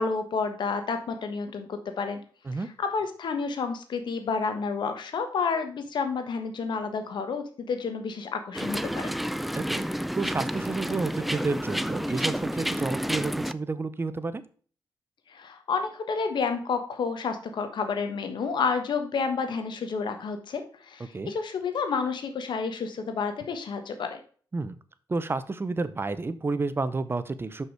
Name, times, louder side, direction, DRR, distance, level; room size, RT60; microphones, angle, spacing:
voice 1, 0.0-2.2 2.6-9.1 15.3-24.2, left 5 dB, 70° left, 7 dB, 1.4 m, -30 dB
sound 1, 8.5-13.5, equal, ahead, 0.4 m, -30 dB
voice 2, 10.1-14.4 21.1-21.3 24.5-24.8 25.1-27.6, right 3 dB, 30° right, 13 dB, 0.7 m, -30 dB
6.0 x 5.5 x 4.8 m, 0.43 s
cardioid pair, 80°, 8 cm